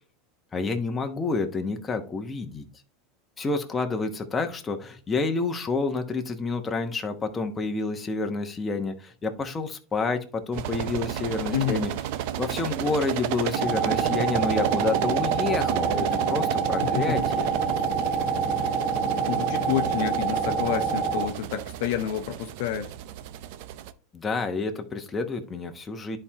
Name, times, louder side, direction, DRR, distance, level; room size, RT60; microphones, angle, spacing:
voice 1, 0.5-2.6 3.4-11.9 12.4-17.5 24.1-26.2, left 3 dB, 20° left, 1.1 m, -29 dB
sound 1, 10.5-23.9, right 11 dB, 65° right, 0.5 m, -31 dB
voice 2, 11.5-11.9 16.8-17.3 19.3-22.9, left 10 dB, 70° left, 0.7 m, -29 dB
sound 2, 13.6-21.3, right 5 dB, 10° right, 1.1 m, -27 dB
10.5 x 4.4 x 2.9 m
supercardioid pair, 115°, 0 cm